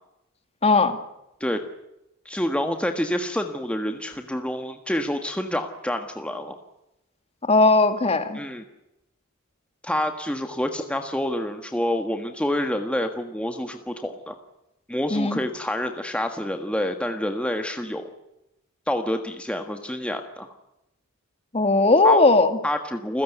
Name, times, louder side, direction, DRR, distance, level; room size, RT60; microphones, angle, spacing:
voice 1, 0.6-1.0 7.5-8.4 15.1-15.4 21.5-22.6, left 3 dB, 30° left, 8 dB, 2.2 m, -18 dB
voice 2, 2.2-6.6 8.3-8.6 9.8-14.4 14.9-18.1 18.9-20.5 22.0-22.2 22.6-23.2, left 1 dB, 5° left, 5 dB, 1.5 m, -27 dB
29.0 x 16.0 x 9.2 m, 0.89 s
head